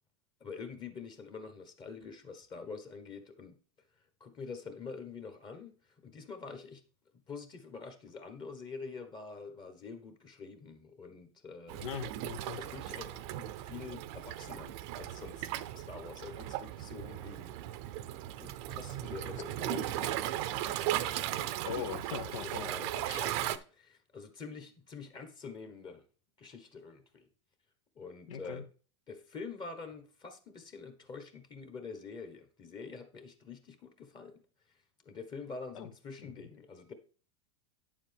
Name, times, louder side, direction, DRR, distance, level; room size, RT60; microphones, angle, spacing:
voice 1, 0.4-3.5 4.2-5.7 6.0-6.8 7.3-11.8 12.5-15.5 15.9-17.5 18.4-21.9 22.4-26.0 26.4-27.3 27.9-28.7 29.1-34.4 35.0-36.9, left 4 dB, 30° left, 8 dB, 1.2 m, -46 dB
Waves surf, 11.7-23.6, right 13 dB, 60° right, 0.6 m, -37 dB
voice 2, 11.8-12.6 21.6-23.2 28.3-28.6 35.7-35.9 36.4-36.5, left 7 dB, 85° left, 9 dB, 0.9 m, -41 dB
8.9 x 7.2 x 3.5 m, 0.38 s
supercardioid pair, 120°, 16 cm